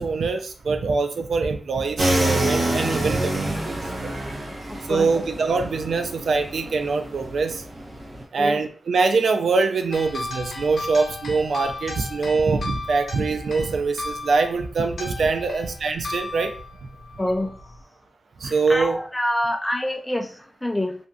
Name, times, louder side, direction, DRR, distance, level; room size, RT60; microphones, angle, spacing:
voice 1, 0.0-4.1 4.9-7.6 8.3-16.5 18.4-19.0, right 4 dB, 85° right, 6 dB, 0.3 m, -23 dB
sound 1, 2.0-8.2, right 1 dB, 50° right, 0.8 m, -27 dB
voice 2, 4.7-5.2 8.4-8.6 17.2-17.6 18.4-21.0, left 1 dB, 15° left, 5 dB, 0.4 m, -27 dB
sound 2, 9.9-17.8, left 3 dB, 80° left, 0.5 m, -36 dB
2.6 x 2.5 x 2.2 m, 0.41 s
wide cardioid pair, 75°, 0 cm